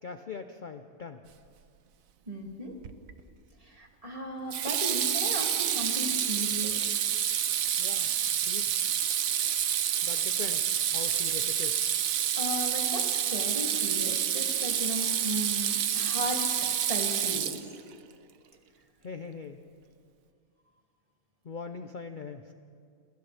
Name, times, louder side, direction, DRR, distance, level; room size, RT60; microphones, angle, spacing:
voice 1, 0.0-1.2 7.8-8.1 8.4-8.8 10.0-11.8 19.0-19.6 21.4-22.5, left 5 dB, 45° left, 7 dB, 0.8 m, -41 dB
voice 2, 2.3-2.8 3.6-6.8 12.4-16.5 16.9-17.7, equal, 25° right, 0 dB, 2.6 m, -36 dB
Water tap faucet / Sink (filling or washing), 2.8-3.2 4.5-17.9, right 9 dB, 85° right, 1.2 m, -28 dB
29.0 x 27.5 x 3.4 m, 2.3 s
omnidirectional pair, 1.4 m